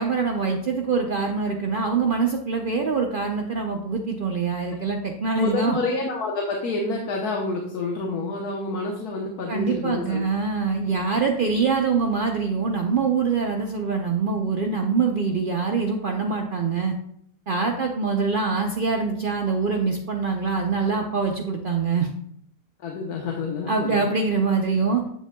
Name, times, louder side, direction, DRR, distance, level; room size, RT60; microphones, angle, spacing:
voice 1, 0.0-5.8 9.5-16.9 17.5-22.1 23.7-25.0, right 5 dB, 85° right, 2 dB, 0.4 m, -24 dB
voice 2, 5.4-10.2 22.8-24.0, left 3 dB, 75° left, -1 dB, 1.4 m, -28 dB
7.8 x 7.3 x 2.2 m, 0.69 s
omnidirectional pair, 1.7 m